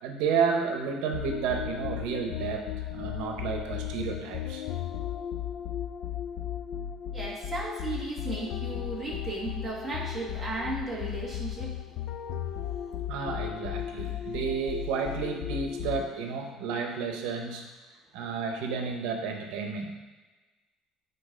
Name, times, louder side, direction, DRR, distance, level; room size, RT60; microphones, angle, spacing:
voice 1, 0.0-4.6 13.1-17.7 18.1-19.9, right 5 dB, 90° right, 4 dB, 0.9 m, -31 dB
sound 1, 1.1-16.3, left 10 dB, 55° left, 0.5 m, -35 dB
voice 2, 7.1-11.7, right 2 dB, 15° right, -4 dB, 1.5 m, -35 dB
7.8 x 4.0 x 5.1 m, 1.2 s
cardioid pair, 160°, 0 cm